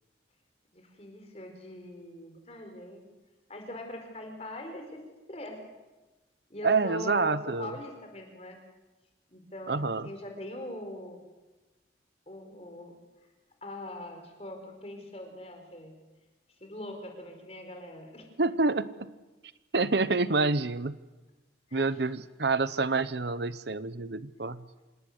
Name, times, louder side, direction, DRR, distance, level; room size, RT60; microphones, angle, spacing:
voice 1, 0.7-3.1 3.5-5.0 5.3-5.6 6.5-8.6 9.3-9.7 10.0-11.2 12.3-12.9 13.6-15.9 16.6-18.3 21.7-22.0, left 1 dB, 35° left, 4 dB, 4.7 m, -42 dB
voice 2, 6.6-7.8 9.7-10.1 18.4-19.1 19.7-21.0 21.7-24.6, right 3 dB, 65° right, 15 dB, 0.8 m, -27 dB
26.5 x 19.5 x 8.1 m, 1.2 s
head